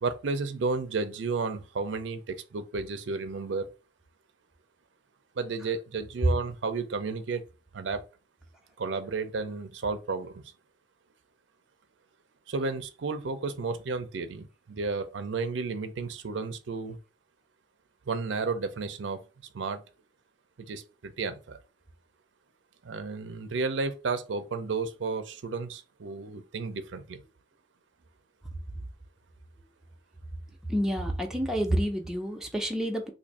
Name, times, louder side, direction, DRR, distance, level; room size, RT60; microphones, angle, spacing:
voice 1, 0.0-3.7 5.3-7.4 7.7-8.1 8.8-10.4 12.5-17.0 18.1-19.2 19.5-19.8 20.6-21.6 22.8-27.2, right 4 dB, 80° right, 0.5 m, -32 dB
voice 2, 30.7-33.1, equal, 5° right, 0.5 m, -29 dB
2.6 x 2.5 x 4.1 m
head